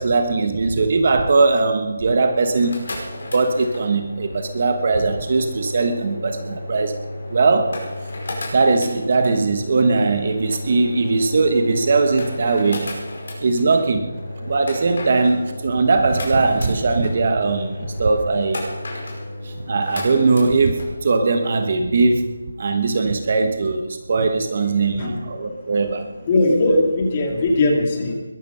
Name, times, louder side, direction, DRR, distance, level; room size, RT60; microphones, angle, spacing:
voice 1, 0.0-2.9 3.3-6.9 7.3-7.7 8.5-12.8 13.4-14.1 14.5-18.6 19.4-26.0, right 3 dB, 30° right, 7 dB, 1.1 m, -20 dB
sound 1, 2.4-20.9, left 1 dB, 45° left, 5.5 m, -33 dB
voice 2, 24.8-25.2 25.5-25.6 26.3-28.1, left 2 dB, 20° left, 2 dB, 2.1 m, -19 dB
21.5 x 12.0 x 5.6 m, 1.2 s
figure-of-eight pair, 180°, 0 cm